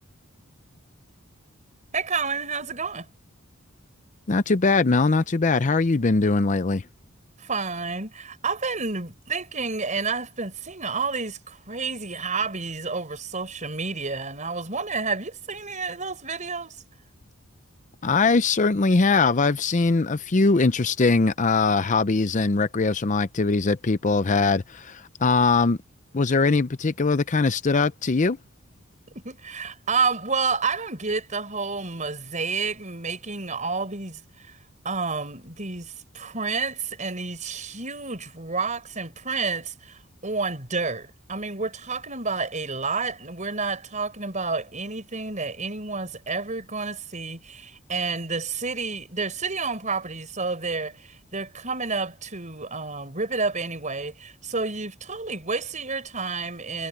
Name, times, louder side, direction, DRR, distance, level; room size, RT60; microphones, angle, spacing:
voice 1, 1.9-3.1 7.4-16.8 29.2-34.6 34.8-56.9, right 4 dB, 35° right, 5.3 m, -30 dB
voice 2, 4.3-6.8 18.0-25.8 26.1-28.4, left 3 dB, 35° left, 0.6 m, -21 dB
head